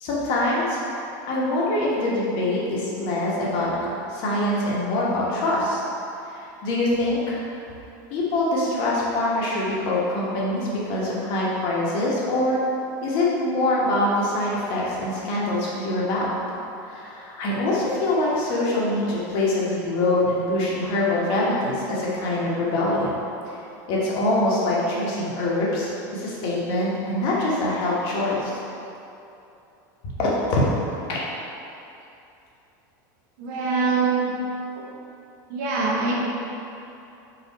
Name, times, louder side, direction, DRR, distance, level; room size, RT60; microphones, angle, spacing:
voice 1, 0.0-0.8 1.3-5.8 6.6-7.4 8.1-12.6 13.0-16.3 16.9-23.1 23.5-23.6 23.9-28.6 30.2-30.6 31.1-31.2, left 1 dB, 55° left, -5 dB, 1.0 m, -24 dB
voice 2, 33.4-34.3 35.5-36.2, right 4 dB, 65° right, -3 dB, 0.8 m, -23 dB
4.1 x 2.5 x 4.0 m, 2.8 s
supercardioid pair, 135°, 10 cm